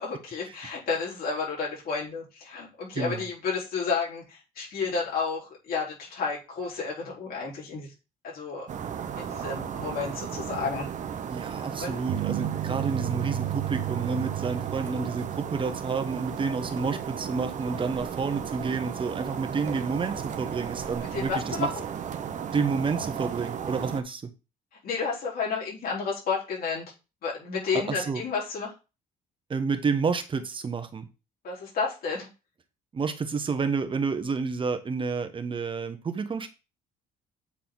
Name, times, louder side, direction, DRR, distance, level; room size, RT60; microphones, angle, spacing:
voice 1, 0.0-7.9 8.2-8.7 9.2-10.9 11.8-12.0 21.1-21.8 24.8-26.9 27.2-28.7 31.4-32.3, left 5 dB, 60° left, 4.3 m, -31 dB
voice 2, 2.9-3.2 11.3-21.7 22.5-24.3 27.7-28.2 29.5-31.1 32.9-36.5, right 5 dB, 30° right, 1.2 m, -29 dB
sound 1, 8.7-24.0, right 8 dB, 45° right, 0.9 m, -35 dB
sound 2, 12.1-16.3, right 13 dB, 80° right, 1.0 m, -33 dB
8.7 x 4.3 x 4.0 m
cardioid pair, 110°, 17 cm